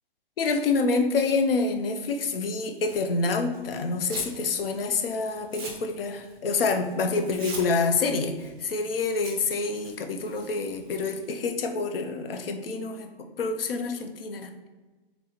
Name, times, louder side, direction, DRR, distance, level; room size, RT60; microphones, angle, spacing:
voice 1, 0.4-13.1 13.4-14.6, left 4 dB, 70° left, 5 dB, 0.6 m, -27 dB
Tearing, 2.8-4.4 4.7-11.3, right 3 dB, 20° right, 0.6 m, -44 dB
3.9 x 3.3 x 2.9 m, 1.2 s
hypercardioid pair, 170°, 30 cm